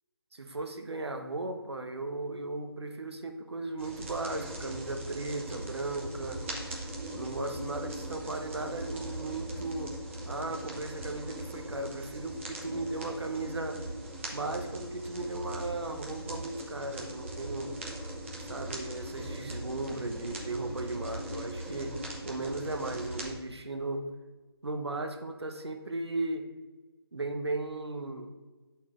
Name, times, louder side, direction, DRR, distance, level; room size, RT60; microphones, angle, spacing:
voice 1, 0.3-6.4 7.1-10.0 10.2-13.8 14.3-17.7 18.4-22.0 22.2-24.1 24.6-26.5 27.1-28.3, right 2 dB, 80° right, 5 dB, 1.0 m, -36 dB
sound 1, 3.8-23.3, right 1 dB, 30° right, 1.1 m, -40 dB
7.6 x 4.3 x 3.8 m, 1.3 s
figure-of-eight pair, 160°, 13 cm